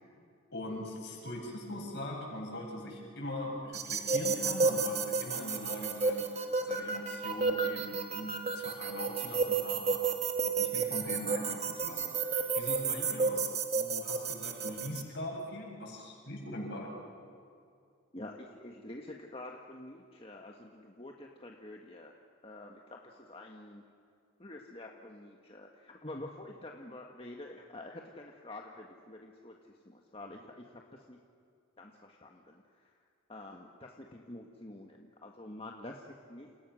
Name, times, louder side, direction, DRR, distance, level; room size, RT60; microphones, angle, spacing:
voice 1, 0.5-10.1 10.4-17.0, left 1 dB, 50° left, -1 dB, 7.6 m, -41 dB
sound 1, 3.7-15.0, right 4 dB, 30° right, 1.9 m, -32 dB
voice 2, 18.1-22.1 22.4-23.8 24.4-31.2 31.8-32.9 33.3-36.6, left 1 dB, 25° left, 1 dB, 1.6 m, -48 dB
29.0 x 29.0 x 6.4 m, 2.4 s
head